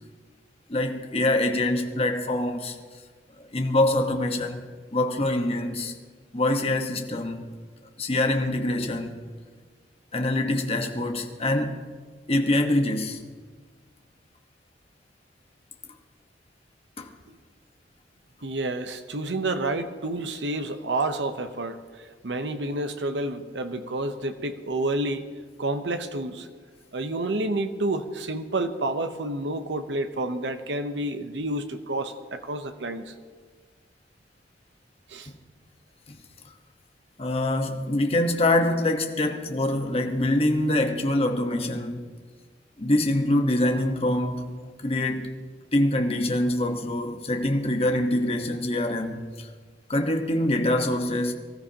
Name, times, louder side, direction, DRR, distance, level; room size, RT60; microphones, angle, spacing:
voice 1, 0.7-2.8 3.5-4.6 4.9-5.9 6.3-7.5 8.0-9.2 10.1-11.8 12.3-13.2 17.0-17.1 36.1-36.2 37.2-42.0 42.8-45.4 45.7-49.5 49.9-51.3, left 1 dB, 35° left, 1.2 m, -25 dB
voice 2, 18.4-25.3 25.6-26.5 26.9-33.1 35.1-35.3, right 2 dB, 90° right, 0.8 m, -29 dB
24.0 x 13.5 x 2.9 m
head